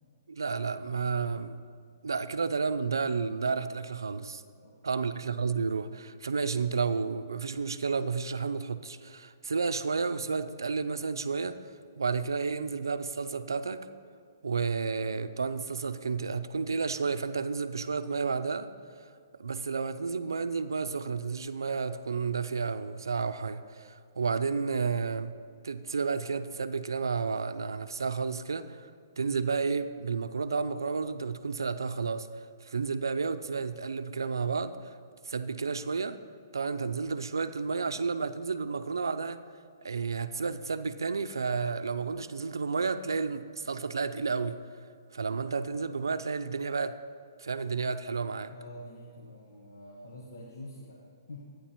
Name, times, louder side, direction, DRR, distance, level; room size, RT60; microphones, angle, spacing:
voice 1, 0.3-1.6 2.0-4.4 4.8-11.6 12.0-13.9 14.4-18.7 19.4-25.3 25.6-28.9 29.2-32.3 32.6-34.8 35.3-36.2 36.5-39.4 39.8-44.6 45.1-46.9 47.4-48.5, right 5 dB, 85° right, 11 dB, 0.5 m, -31 dB
voice 2, 4.6-5.1 48.5-51.5, left 1 dB, 85° left, -2 dB, 1.3 m, -47 dB
14.0 x 9.4 x 3.0 m, 2.3 s
hypercardioid pair, 135°, 2 cm